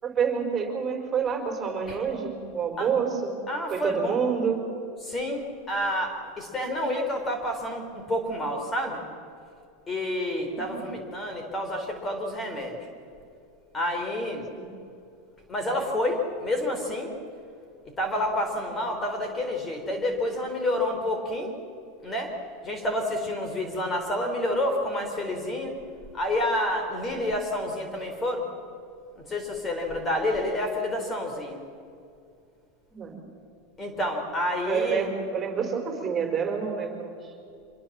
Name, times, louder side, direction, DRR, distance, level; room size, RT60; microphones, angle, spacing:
voice 1, 0.0-3.4 3.7-4.6 10.5-10.8 14.5-14.7 32.9-33.2 34.6-37.1, right 6 dB, 25° right, 4 dB, 4.9 m, -28 dB
voice 2, 3.5-4.2 5.0-9.0 9.9-12.8 13.7-14.5 15.5-17.1 18.0-21.5 22.0-22.3 22.6-25.7 26.1-28.5 29.3-31.6 33.8-35.0, left 1 dB, 20° left, 4 dB, 4.1 m, -29 dB
25.5 x 21.5 x 7.5 m, 2.4 s
supercardioid pair, 120°, 0 cm